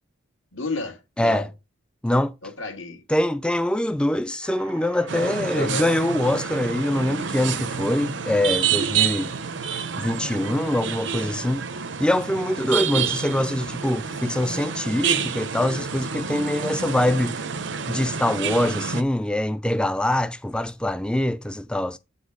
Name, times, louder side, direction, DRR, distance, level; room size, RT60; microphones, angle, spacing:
voice 1, 0.5-1.5 2.4-3.0 5.5-5.8 12.9-13.1, left 2 dB, 75° left, 1.7 m, -31 dB
voice 2, 1.2-1.5 2.0-2.3 3.1-9.3 10.0-11.7 12.0-17.4 17.9-22.0, left 1 dB, 5° left, 0.3 m, -24 dB
sound 1, 4.4-10.4, right 3 dB, 85° right, 0.9 m, -46 dB
sound 2, 5.1-19.0, right 7 dB, 65° right, 0.6 m, -28 dB
7.8 x 4.2 x 4.6 m
head